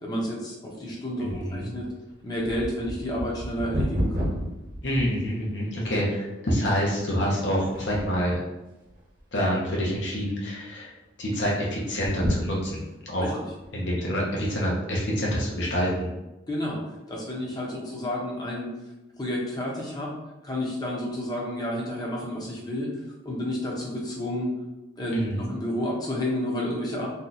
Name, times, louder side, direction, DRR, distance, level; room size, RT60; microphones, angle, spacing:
voice 1, 0.0-1.9 2.2-4.4 13.2-13.3 16.5-16.8 17.1-18.7 19.2-20.1 20.4-22.9 23.2-24.5 25.0-27.1, left 1 dB, 20° left, -3 dB, 0.7 m, -30 dB
voice 2, 1.2-1.7 4.8-8.4 9.3-10.9 11.2-13.4 13.7-16.1 25.1-25.4, equal, 70° left, -4 dB, 0.8 m, -27 dB
sound 1, 1.3-5.7 6.3-6.4 7.1-7.4 7.7-8.3 8.9-9.6 9.9-10.0 10.3-10.4 11.9-13.0 13.6-13.7, equal, 45° right, 1.0 m, -31 dB
2.7 x 2.3 x 3.8 m, 0.99 s
head